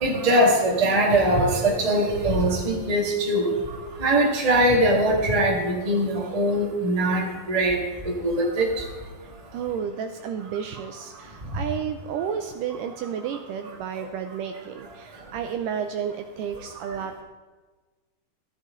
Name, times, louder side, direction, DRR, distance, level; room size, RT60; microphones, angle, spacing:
voice 1, 0.0-3.5 4.0-7.8 8.2-8.7, right 1 dB, 20° right, -2 dB, 1.0 m, -21 dB
voice 2, 9.5-17.2, right 7 dB, 80° right, 6 dB, 2.0 m, -32 dB
14.0 x 12.5 x 3.8 m, 1.3 s
omnidirectional pair, 4.2 m